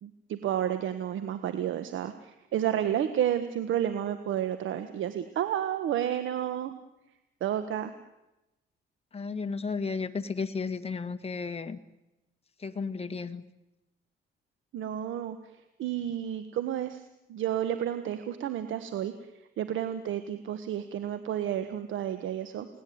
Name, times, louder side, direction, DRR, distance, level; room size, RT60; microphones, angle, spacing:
voice 1, 0.0-6.8 7.4-7.9 14.7-19.3 19.6-22.7, right 10 dB, 75° right, 10 dB, 1.5 m, -31 dB
voice 2, 9.1-11.8 12.6-13.4, left 4 dB, 30° left, 8 dB, 1.8 m, -33 dB
29.5 x 18.5 x 9.5 m, 0.98 s
cardioid pair, 90°, 20 cm